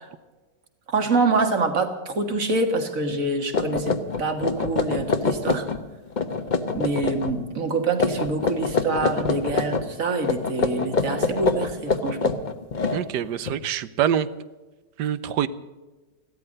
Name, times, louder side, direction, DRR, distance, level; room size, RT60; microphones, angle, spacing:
voice 1, 0.9-5.6 6.7-12.3, right 3 dB, 50° right, 6 dB, 2.1 m, -26 dB
sound 1, 3.1-3.2 3.5-5.8 6.1-7.3 7.9-9.9 10.2-13.5, left 4 dB, 35° left, 0.9 m, -25 dB
voice 2, 12.9-14.3 15.0-15.5, right 9 dB, 75° right, 15 dB, 1.3 m, -25 dB
16.0 x 13.0 x 6.5 m, 1.2 s
omnidirectional pair, 1.9 m